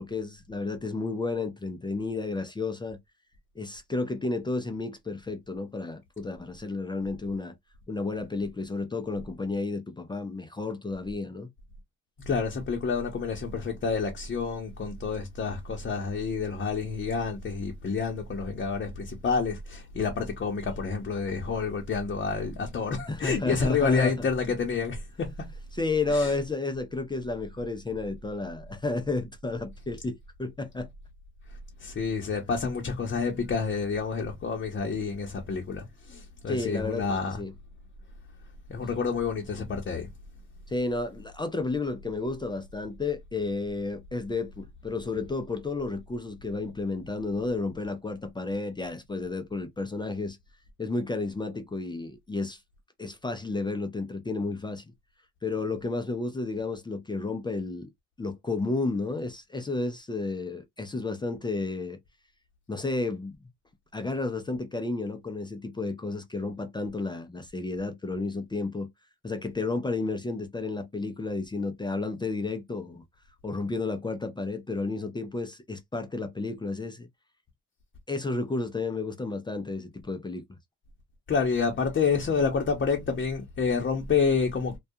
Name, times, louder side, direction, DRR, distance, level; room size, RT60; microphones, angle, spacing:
voice 1, 0.0-3.0 3.6-7.6 7.9-11.5 23.1-24.3 25.7-30.9 36.5-37.5 40.7-50.4 50.8-52.6 53.0-54.9 55.4-57.9 58.2-62.0 62.7-63.4 63.9-68.9 69.2-73.0 73.4-77.1 78.1-80.4, left 3 dB, 15° left, 0.4 m, -32 dB
voice 2, 12.3-25.3 26.1-26.3 31.8-37.4 38.7-40.1 81.3-84.8, left 5 dB, 40° left, 0.7 m, -29 dB
2.3 x 2.2 x 2.7 m
cardioid pair, 90°, 30 cm